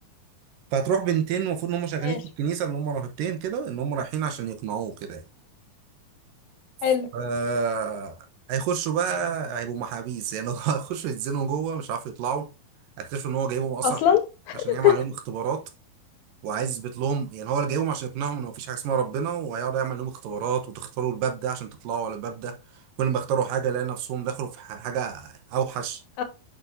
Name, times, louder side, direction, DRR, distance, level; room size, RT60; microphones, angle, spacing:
voice 1, 0.7-5.2 7.1-8.2 8.5-12.5 13.0-14.0 14.6-15.6 16.4-26.0, right 7 dB, 75° right, 2.5 m, -28 dB
voice 2, 13.8-14.9 26.2-26.3, left 10 dB, 85° left, 2.9 m, -22 dB
8.9 x 6.0 x 2.6 m
omnidirectional pair, 4.2 m